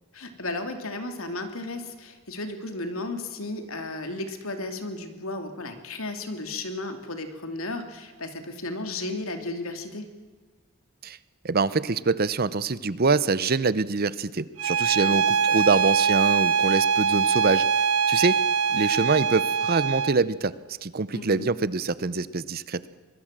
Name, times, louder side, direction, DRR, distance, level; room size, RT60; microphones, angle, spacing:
voice 1, 0.1-10.1 15.0-15.7 21.1-21.5, left 2 dB, 70° left, 7 dB, 2.8 m, -34 dB
voice 2, 11.4-17.6 18.1-18.4 18.7-20.5 20.8-22.8, right 4 dB, 45° right, 17 dB, 0.7 m, -25 dB
Bowed string instrument, 14.6-20.2, right 6 dB, 70° right, 0.9 m, -23 dB
24.5 x 21.0 x 7.5 m, 1.5 s
head